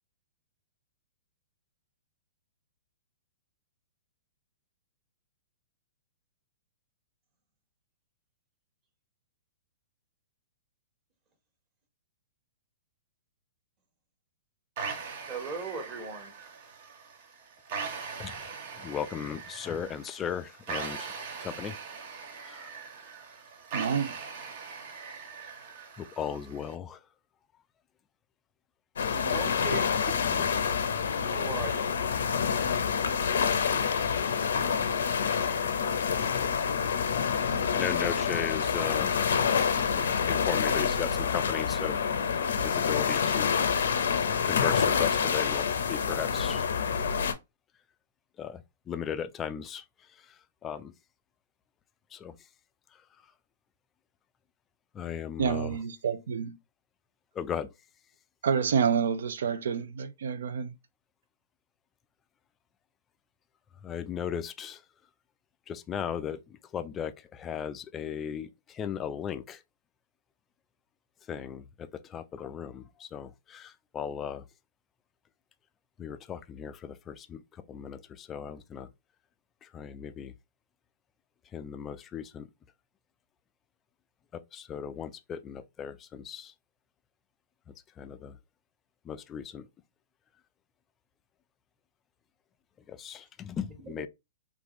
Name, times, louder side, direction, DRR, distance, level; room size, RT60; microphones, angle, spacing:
sound 1, 14.8-26.8, right 5 dB, 50° right, 0.8 m, -41 dB
voice 1, 15.3-16.3 29.1-30.1 31.3-31.9 93.8-94.1, right 4 dB, 25° right, 1.1 m, -38 dB
voice 2, 18.8-21.1 21.4-21.8 22.4-22.7 26.0-27.0 30.2-30.5 37.7-39.2 39.9-42.0 42.6-43.6 44.4-46.7 48.4-49.8 50.6-50.9 52.1-52.4 54.9-55.8 57.4-57.7 63.8-64.8 65.7-69.6 71.3-74.4 76.0-77.4 77.7-78.9 79.6-80.3 81.5-82.5 84.3-86.5 88.0-88.4 89.1-89.7 92.9-94.1, left 8 dB, 20° left, 0.3 m, -37 dB
voice 3, 23.7-24.1 55.4-56.6 58.4-60.7, right 7 dB, 75° right, 0.5 m, -28 dB
sound 2, 29.0-47.3, left 6 dB, 80° left, 0.6 m, -27 dB
3.4 x 2.4 x 3.0 m
hypercardioid pair, 150°, 0 cm